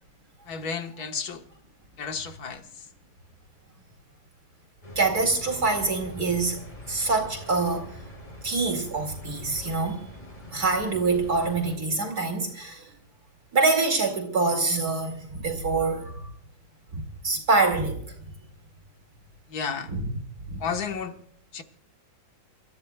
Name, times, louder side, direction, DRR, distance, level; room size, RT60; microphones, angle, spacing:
voice 1, 0.5-1.4 2.0-2.9 19.5-19.9 20.6-21.2 21.5-21.6, left 6 dB, 55° left, 1.7 m, -32 dB
sound 1, 4.8-11.8, left 1 dB, 25° left, 3.8 m, -44 dB
voice 2, 5.0-6.6 6.9-7.9 8.4-10.0 10.5-12.9 13.5-16.3 16.9-18.0 19.9-20.1 20.5-20.7, right 3 dB, 50° right, 2.8 m, -25 dB
29.0 x 14.0 x 2.3 m
omnidirectional pair, 2.1 m